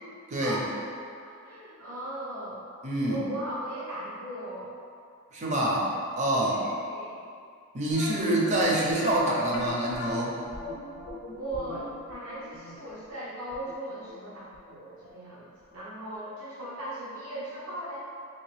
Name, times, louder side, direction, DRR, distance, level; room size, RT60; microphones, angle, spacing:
voice 1, 0.4-0.7 1.3-2.6 3.1-4.7 6.5-7.2 8.2-8.5 11.3-18.0, right 1 dB, 75° right, -9 dB, 0.8 m, -38 dB
voice 2, 2.8-3.2 5.3-6.6 7.7-10.4, right 1 dB, 30° right, -3 dB, 0.5 m, -26 dB
sound 1, 7.9-14.8 15.0-15.1 15.7-15.8 16.1-16.2, left 2 dB, 55° left, 0.5 m, -40 dB
2.9 x 2.7 x 3.2 m, 2.4 s
head